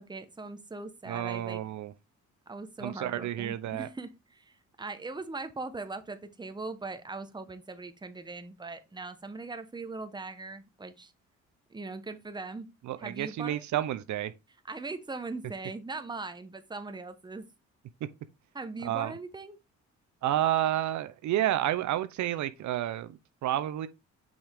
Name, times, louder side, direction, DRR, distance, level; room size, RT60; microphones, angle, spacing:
voice 1, 0.0-1.6 2.5-11.1 11.7-12.7 13.0-13.8 14.7-17.5 18.5-19.6, right 3 dB, 15° right, 1.0 m, -40 dB
voice 2, 1.1-1.9 2.8-3.9 12.8-14.3 18.8-19.1 20.2-23.9, right 12 dB, 70° right, 0.6 m, -30 dB
6.1 x 5.1 x 3.5 m
cardioid pair, 90°, 30 cm